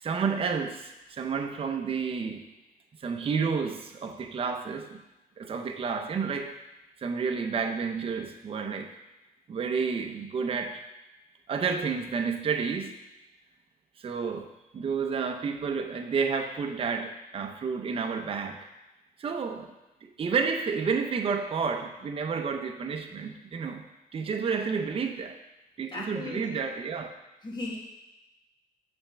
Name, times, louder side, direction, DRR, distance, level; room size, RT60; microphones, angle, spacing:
voice 1, 0.0-2.5 3.0-5.0 5.4-6.5 7.0-8.9 9.5-10.8 11.5-13.0 14.0-14.5 14.7-18.7 19.2-19.7 20.0-23.8 24.1-25.4 25.8-27.1, right 5 dB, 35° right, 5 dB, 0.7 m, -30 dB
voice 2, 25.9-26.6 27.4-27.8, left 2 dB, 30° left, -3 dB, 1.8 m, -37 dB
7.2 x 3.5 x 5.7 m, 1.0 s
cardioid pair, 115°, 16 cm